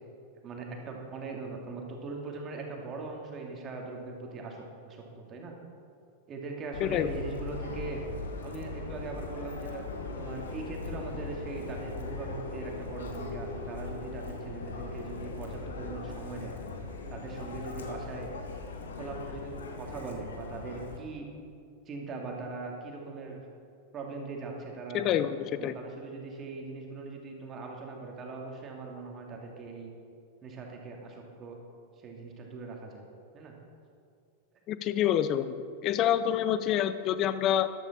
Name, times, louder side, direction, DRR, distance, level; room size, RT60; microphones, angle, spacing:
voice 1, 0.4-5.5 6.3-8.0 8.4-9.8 10.2-16.6 17.1-18.3 19.0-21.3 21.9-23.4 23.9-29.9 30.4-31.6 32.0-33.1 33.3-33.5, right 3 dB, 30° right, 1 dB, 2.3 m, -40 dB
Subway metro underground, 6.7-21.0, left 3 dB, 65° left, 1.3 m, -39 dB
voice 2, 6.8-7.1 24.9-25.8 34.7-35.5 35.8-37.7, left 10 dB, 35° left, 13 dB, 0.6 m, -27 dB
13.5 x 12.0 x 4.2 m, 2.4 s
figure-of-eight pair, 90°, 0 cm